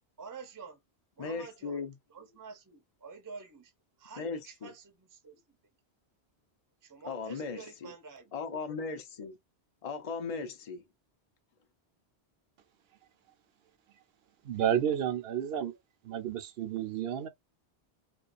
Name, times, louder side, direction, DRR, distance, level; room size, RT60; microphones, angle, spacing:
voice 1, 0.2-0.8 1.2-1.8 2.1-3.7 4.0-5.4 6.8-8.4, right 5 dB, 25° right, 0.5 m, -48 dB
voice 2, 1.2-1.9 4.2-4.7 7.0-7.9 8.3-9.4 9.8-10.8, left 4 dB, 50° left, 0.5 m, -37 dB
voice 3, 14.4-15.8 16.0-17.3, right 9 dB, 70° right, 0.8 m, -31 dB
2.4 x 2.3 x 2.4 m
omnidirectional pair, 1.1 m